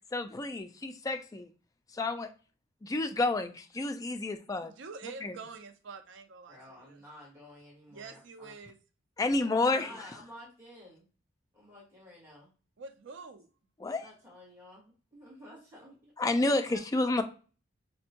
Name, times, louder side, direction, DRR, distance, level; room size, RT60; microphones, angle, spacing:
voice 1, 0.1-1.5 1.9-2.3 2.8-4.7 5.2-5.3 9.2-9.9 13.8-14.1 16.2-17.2, left 2 dB, 20° left, 7 dB, 0.3 m, -30 dB
voice 2, 4.6-7.0 7.9-8.8 12.8-13.5 16.4-16.8, right 4 dB, 65° right, 7 dB, 0.5 m, -47 dB
voice 3, 6.5-8.5 9.4-11.0 11.5-12.5 14.0-16.1, left 1 dB, 15° right, -7 dB, 1.6 m, -52 dB
5.1 x 2.1 x 2.8 m, 0.37 s
head